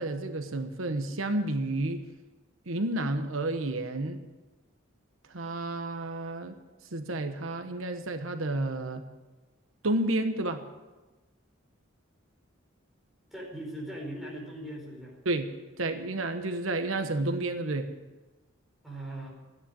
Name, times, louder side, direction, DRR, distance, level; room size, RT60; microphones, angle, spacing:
voice 1, 0.0-2.0 2.7-4.2 5.3-6.6 6.9-9.0 9.8-10.6 15.2-15.5 15.8-17.9, right 2 dB, 90° right, 8 dB, 1.2 m, -30 dB
voice 2, 13.3-15.2 18.8-19.3, right 1 dB, ahead, -3 dB, 4.7 m, -39 dB
14.5 x 10.0 x 8.8 m, 1.2 s
head